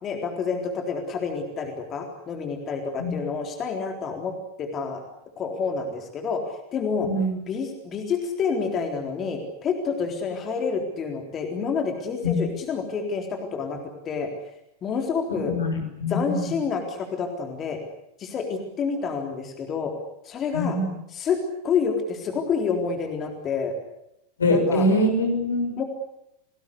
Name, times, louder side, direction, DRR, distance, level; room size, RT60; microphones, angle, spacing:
voice 1, 0.0-4.3 4.6-5.0 5.4-6.4 6.7-7.1 7.5-13.8 14.0-14.3 14.8-15.5 16.1-17.8 18.2-19.9 20.2-20.8 21.1-23.7 24.5-24.9 25.8-25.9, left 5 dB, 30° left, 4 dB, 3.9 m, -28 dB
voice 2, 15.4-16.5 20.5-20.9 24.4-25.7, left 1 dB, 70° left, 4 dB, 6.8 m, -23 dB
29.5 x 19.5 x 8.4 m, 0.81 s
figure-of-eight pair, 90°, 0 cm